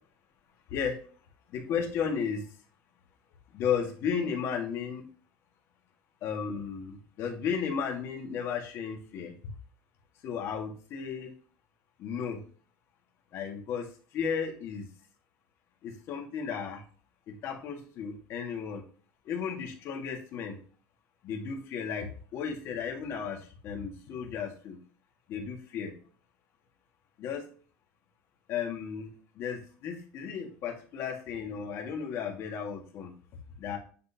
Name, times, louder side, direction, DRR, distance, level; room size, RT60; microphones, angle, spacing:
voice 1, 0.7-1.1 1.5-2.5 3.5-5.0 6.2-9.3 10.2-11.3 12.0-12.4 13.3-14.9 15.8-16.8 17.3-18.8 19.2-20.6 21.2-24.8 25.3-25.9 27.2-27.4 28.5-33.1 33.6-33.8, left 7 dB, 45° left, 3 dB, 1.7 m, -34 dB
9.3 x 4.0 x 2.7 m, 0.40 s
cardioid pair, 150°, 6 cm